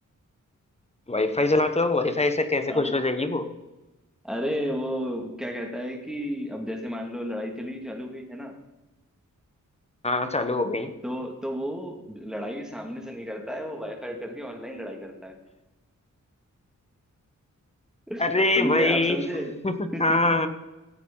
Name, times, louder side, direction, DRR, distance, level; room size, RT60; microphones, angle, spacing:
voice 1, 1.1-3.5 10.0-10.9 18.2-19.2 19.6-20.5, left 2 dB, 20° left, 9 dB, 1.1 m, -23 dB
voice 2, 2.7-3.0 4.2-8.5 11.0-15.4 18.1-18.2 18.6-19.6 19.9-20.4, equal, ahead, 2 dB, 2.2 m, -32 dB
15.0 x 8.2 x 3.9 m, 1.0 s
wide cardioid pair, 85°, 32 cm